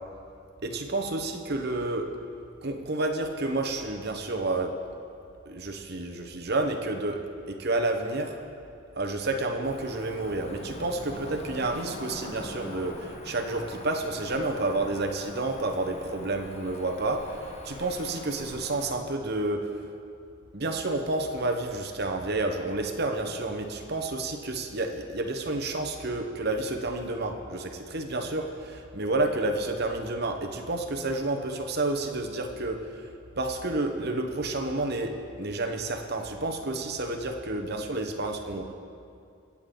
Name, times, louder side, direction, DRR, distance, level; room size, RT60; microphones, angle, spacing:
voice 1, 0.6-2.1 2.6-4.8 5.4-7.2 7.5-8.4 9.0-19.8 20.5-38.7, right 2 dB, 50° right, 4 dB, 1.1 m, -30 dB
Cricket / Motor vehicle (road), 9.6-18.9, left 1 dB, 30° left, 0.9 m, -43 dB
24.0 x 8.6 x 3.9 m, 2.5 s
head